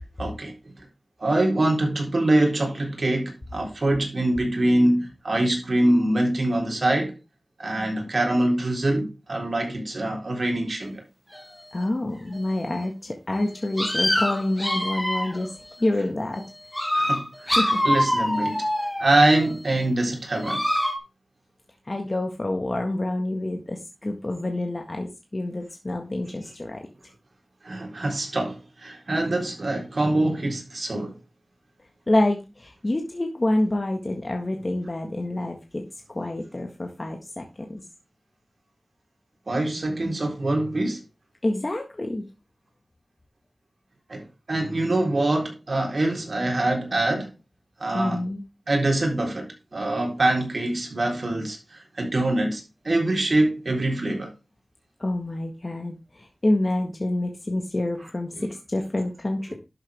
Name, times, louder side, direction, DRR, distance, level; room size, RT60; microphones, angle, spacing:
voice 1, 0.2-0.5 1.2-7.1 7.6-11.0 16.9-18.6 19.0-20.6 27.6-31.1 39.5-41.0 44.1-47.3 47.8-48.2 48.7-54.3, right 1 dB, 60° right, 4.0 m, -24 dB
sound 1, 11.3-11.4 12.3-12.4 13.4-13.5 13.8-15.5 16.4-16.5 16.7-19.5 20.4-21.0, left 1 dB, 10° left, 2.1 m, -25 dB
voice 2, 11.7-15.5 15.8-16.4 17.6-17.8 21.9-26.9 32.1-35.8 36.1-37.8 41.4-42.2 47.9-48.4 55.0-59.5, left 1 dB, 40° left, 1.7 m, -27 dB
11.5 x 7.2 x 3.5 m
wide cardioid pair, 75°, 0 cm